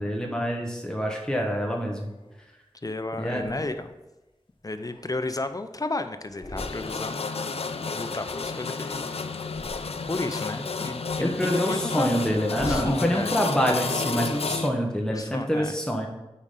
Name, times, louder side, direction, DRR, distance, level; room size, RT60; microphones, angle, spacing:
voice 1, 0.0-2.1 3.2-3.4 11.2-16.1, equal, 5° left, 1 dB, 1.1 m, -26 dB
sound 1, 1.3-2.5 3.2-4.1 4.6-5.8 6.2-7.3 7.5-8.9 9.3-10.4 10.8-13.6, left 1 dB, 55° left, 1.3 m, -44 dB
voice 2, 2.8-3.9 4.6-7.4 7.8-9.1 10.1-12.1 12.6-13.3 15.1-15.8, left 2 dB, 35° left, 9 dB, 0.6 m, -32 dB
sound 2, 6.6-14.7, left 4 dB, 90° left, 0.4 m, -31 dB
8.3 x 4.9 x 3.8 m, 1.0 s
wide cardioid pair, 40°, 10 cm